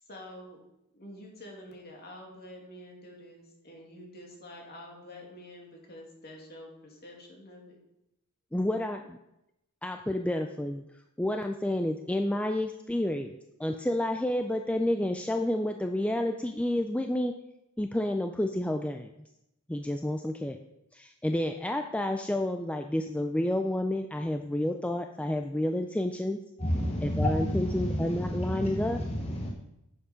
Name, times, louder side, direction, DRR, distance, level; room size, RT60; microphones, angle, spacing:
voice 1, 0.0-0.6 0.9-7.8, left 1 dB, 45° left, -1 dB, 2.4 m, -47 dB
voice 2, 8.5-9.2 9.8-10.8 11.2-17.3 17.8-19.1 19.7-20.6 20.9-26.4 27.0-29.0, left 1 dB, 5° left, 5 dB, 0.4 m, -30 dB
voice 3, 26.6-29.5, equal, 25° left, -1 dB, 1.0 m, -30 dB
10.0 x 7.0 x 5.1 m, 0.86 s
head